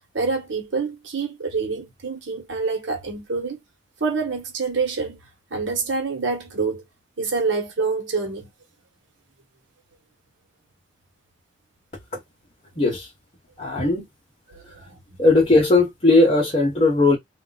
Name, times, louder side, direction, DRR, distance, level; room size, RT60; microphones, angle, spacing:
voice 1, 0.1-3.6 4.0-5.2 5.5-6.8 7.2-8.5 14.5-15.0, right 4 dB, 70° right, 1.0 m, -26 dB
voice 2, 12.8-13.1 13.6-14.1 15.2-17.2, left 2 dB, 35° left, 1.0 m, -18 dB
2.4 x 2.1 x 3.9 m
head